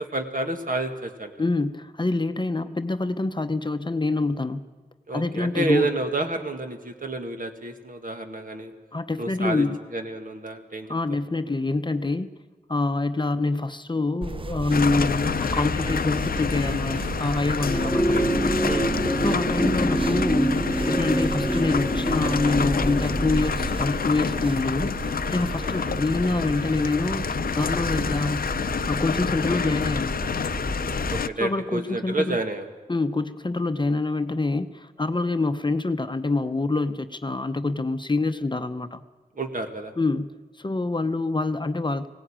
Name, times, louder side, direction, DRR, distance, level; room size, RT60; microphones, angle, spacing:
voice 1, 0.0-1.3 5.1-8.7 9.2-9.7 9.9-10.9 17.8-18.4 18.7-18.9 25.6-26.0 31.1-32.7 39.3-39.9, right 2 dB, 55° right, 5 dB, 2.0 m, -29 dB
voice 2, 1.4-4.6 5.1-5.9 8.9-9.8 10.9-12.3 12.7-18.2 19.2-20.6 20.9-24.9 25.3-27.2 27.5-28.5 28.9-30.2 31.4-32.4 32.9-39.0 40.0-42.1, left 3 dB, 30° left, 10 dB, 0.8 m, -26 dB
sound 1, 14.2-31.2, right 2 dB, 30° right, 0.8 m, -33 dB
sound 2, 14.7-31.3, left 6 dB, 60° left, 0.5 m, -28 dB
sound 3, 17.6-26.3 27.5-27.6, right 1 dB, 5° right, 2.2 m, -27 dB
17.0 x 17.0 x 8.8 m, 1.3 s
cardioid pair, 50°, 17 cm